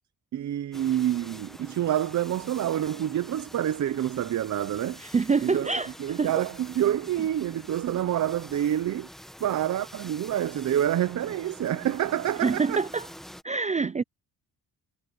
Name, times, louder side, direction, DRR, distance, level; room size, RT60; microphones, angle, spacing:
voice 1, 0.3-5.0 5.4-5.7 6.0-9.1 9.4-12.8, right 11 dB, 50° right, 0.7 m, -27 dB
sound 1, 0.7-13.4, equal, ahead, 1.3 m, -46 dB
voice 2, 5.0-6.4 12.4-13.1 13.4-14.0, right 4 dB, 20° right, 0.4 m, -26 dB
cardioid pair, 150°, 38 cm